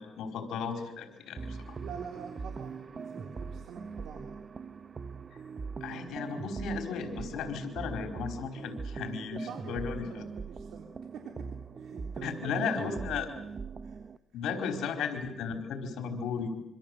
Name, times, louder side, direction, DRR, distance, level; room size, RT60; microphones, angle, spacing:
voice 1, 0.0-1.8 5.8-10.1 12.2-13.3 14.3-16.5, left 6 dB, 85° left, 6 dB, 4.4 m, -35 dB
sound 1, 1.4-14.2, right 5 dB, 35° right, 1.1 m, -41 dB
voice 2, 1.8-4.4 9.3-10.9 11.1-11.3 11.8-12.6 12.8-13.3 13.8-14.0, right 6 dB, 75° right, 3 dB, 3.5 m, -45 dB
25.5 x 25.5 x 8.0 m, 0.89 s
cardioid pair, 100°, 0 cm